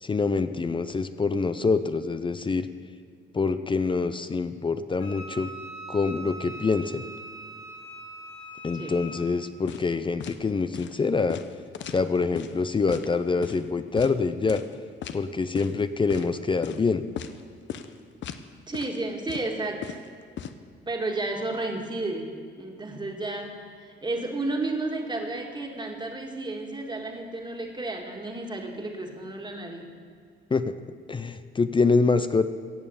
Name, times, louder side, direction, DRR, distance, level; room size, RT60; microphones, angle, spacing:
voice 1, 0.0-2.7 3.3-5.5 5.9-7.0 8.6-11.4 11.9-14.6 15.1-17.0 30.5-30.8 31.1-32.5, left 4 dB, 25° left, 11 dB, 0.5 m, -25 dB
Wind instrument woodwind instrument, 5.0-9.2, right 2 dB, 85° left, 2.1 m, -41 dB
sound 1, 9.7-9.9 10.2-10.4 10.7-10.9 11.3-12.5 12.9-13.1 13.4-13.6 14.0-14.1 14.5-14.7 15.0-15.2 15.5-15.8 16.1-16.3 16.6-16.8 17.2-17.4 17.7-17.9 18.2-18.4 18.7-19.0 19.3-20.5, left 8 dB, 70° left, 0.8 m, -37 dB
voice 2, 18.7-20.0 20.9-29.9, right 2 dB, 20° right, 2 dB, 2.1 m, -32 dB
17.5 x 6.9 x 7.2 m, 2.3 s
cardioid pair, 90°, 20 cm